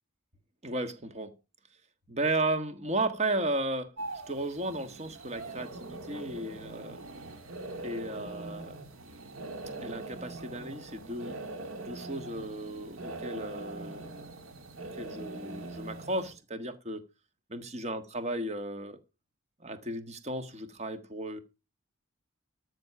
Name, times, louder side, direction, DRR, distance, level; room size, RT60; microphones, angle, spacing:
voice 1, 0.6-1.3 2.1-3.9 4.3-7.0 7.8-8.9 9.8-11.4 11.8-14.1 15.0-17.0 17.5-19.0 19.6-21.4, right 2 dB, 30° right, 1.6 m, -34 dB
sound 1, 4.0-16.3, right 2 dB, 75° right, 1.8 m, -42 dB
13.0 x 6.6 x 5.7 m
head